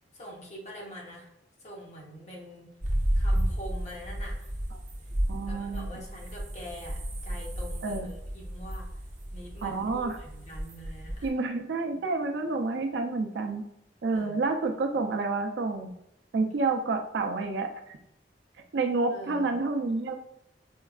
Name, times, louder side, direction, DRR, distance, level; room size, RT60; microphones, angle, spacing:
voice 1, 0.1-1.3 1.6-2.7 3.1-4.6 5.5-8.9 9.3-11.3 11.9-12.0 14.1-14.4 19.1-19.5, equal, 40° left, -2 dB, 0.8 m, -44 dB
sound 1, 2.8-11.3, equal, 45° right, 0.8 m, -32 dB
voice 2, 5.3-6.0 7.8-8.1 9.6-10.2 11.2-13.6 14.0-15.9 16.3-18.0 18.7-20.2, right 3 dB, 70° right, 5 dB, 0.4 m, -29 dB
4.4 x 2.3 x 2.3 m, 0.81 s
head